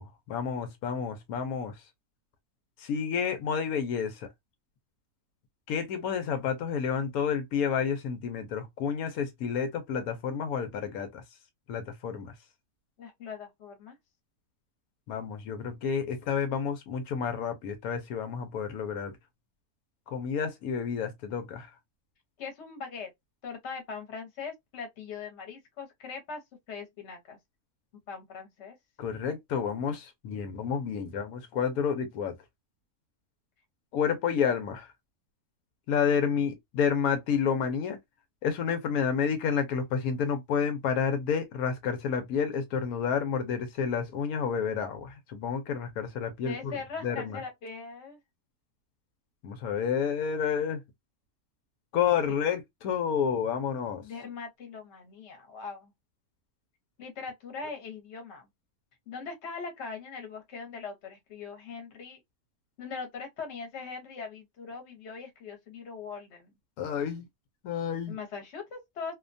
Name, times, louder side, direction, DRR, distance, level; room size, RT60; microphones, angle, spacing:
voice 1, 0.0-1.8 2.8-4.3 5.7-11.2 11.7-12.3 15.1-19.2 20.1-21.7 29.0-32.3 33.9-34.9 35.9-38.0 38.4-46.7 47.0-47.4 49.4-50.8 51.9-54.0 66.8-67.3 67.6-68.2, left 7 dB, 90° left, 1.1 m, -30 dB
voice 2, 13.0-14.0 22.4-23.1 23.4-26.4 26.7-27.4 28.1-28.8 46.4-48.2 54.0-55.9 57.0-58.5 59.1-62.2 62.8-66.5 68.1-69.1, left 5 dB, 55° left, 1.0 m, -41 dB
2.6 x 2.2 x 2.5 m
omnidirectional pair, 1.5 m